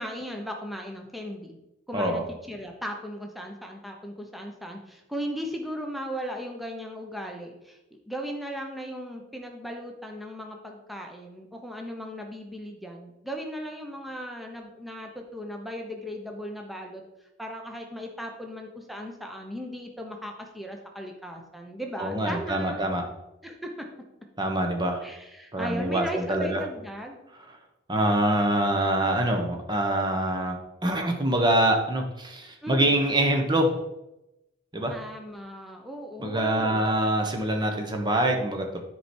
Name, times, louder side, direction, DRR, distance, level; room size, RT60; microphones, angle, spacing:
voice 1, 0.0-1.6 1.9-7.8 8.1-17.0 17.4-22.8 23.4-23.9 25.0-27.2 32.6-33.0 34.9-36.8, equal, ahead, 2 dB, 0.9 m, -37 dB
voice 2, 1.9-2.2 22.0-23.0 24.4-25.0 25.5-26.6 27.9-33.7 34.7-35.0 36.2-38.8, right 1 dB, 20° right, 3 dB, 1.1 m, -25 dB
10.0 x 4.7 x 4.4 m, 0.92 s
head